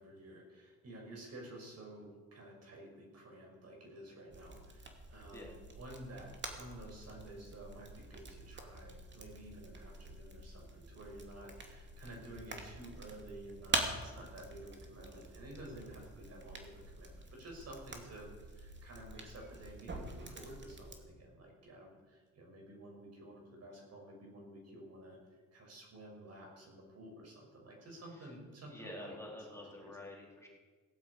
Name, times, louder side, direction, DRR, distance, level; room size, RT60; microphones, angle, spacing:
voice 1, 0.0-25.2 25.5-29.2 29.5-30.0, right 1 dB, 55° right, 0 dB, 6.1 m, -52 dB
sound 1, 4.3-21.0, right 3 dB, 35° right, 2.6 m, -45 dB
voice 2, 28.7-30.5, left 1 dB, 10° left, -2 dB, 3.9 m, -48 dB
17.5 x 8.3 x 8.6 m, 1.4 s
cardioid pair, 90°, 30 cm